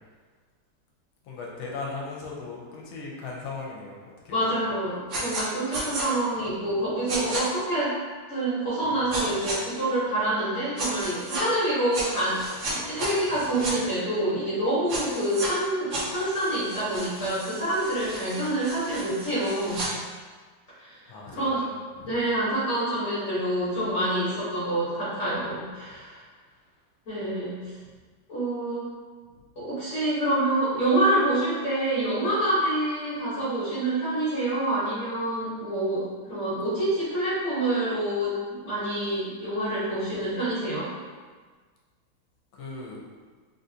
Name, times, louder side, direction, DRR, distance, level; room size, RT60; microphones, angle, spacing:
voice 1, 1.3-4.6 6.6-6.7 13.3-13.4 21.1-22.2 42.6-43.0, left 3 dB, 80° left, -3 dB, 1.5 m, -38 dB
voice 2, 4.3-8.0 8.3-12.4 12.7-19.8 20.8-21.0 21.3-21.7 22.0-26.2 27.1-27.6 28.3-28.9 29.5-40.9, right 1 dB, 40° left, -12 dB, 1.4 m, -27 dB
sound 1, 5.1-5.4 5.7-6.1 7.1-7.4 9.1-9.6 10.8-11.4 11.9-13.7 14.9-15.5 15.9-19.9, right 1 dB, 75° right, 0.7 m, -33 dB
3.8 x 2.6 x 2.7 m, 1.5 s
omnidirectional pair, 2.2 m